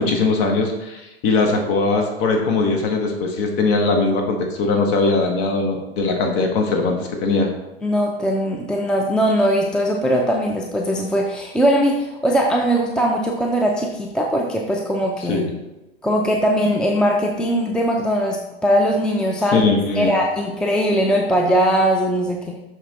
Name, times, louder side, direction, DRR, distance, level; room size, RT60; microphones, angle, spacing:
voice 1, 0.0-7.5 15.3-15.5 19.5-20.1, left 3 dB, 40° left, 2 dB, 1.3 m, -20 dB
voice 2, 7.8-15.4 16.0-19.6 20.0-22.6, equal, 5° left, 1 dB, 0.5 m, -20 dB
6.1 x 5.8 x 4.2 m, 1.0 s
hypercardioid pair, 110°, 32 cm